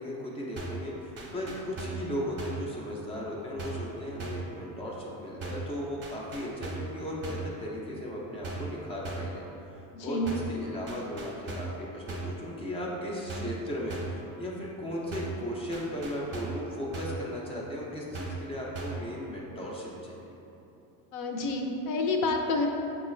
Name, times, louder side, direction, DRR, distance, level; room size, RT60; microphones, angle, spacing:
voice 1, 0.0-9.4 10.0-20.3, equal, 15° left, -4 dB, 0.3 m, -36 dB
sound 1, 0.6-0.9 1.2-2.1 2.4-2.7 3.6-3.9 4.2-4.5 5.4-5.7 6.0-6.9 7.2-7.5 8.4-8.8 9.0-9.4 10.3-10.6 10.9-11.8 12.1-12.4 13.3-13.6 13.9-14.2 15.1-15.4 15.7-16.6 16.9-17.3 18.1-18.5 18.7-19.1, right 3 dB, 25° right, 0.6 m, -37 dB
voice 2, 9.9-10.3 21.1-22.7, left 3 dB, 65° left, 3 dB, 0.6 m, -29 dB
5.9 x 2.3 x 3.1 m, 2.9 s
cardioid pair, 135°, 42 cm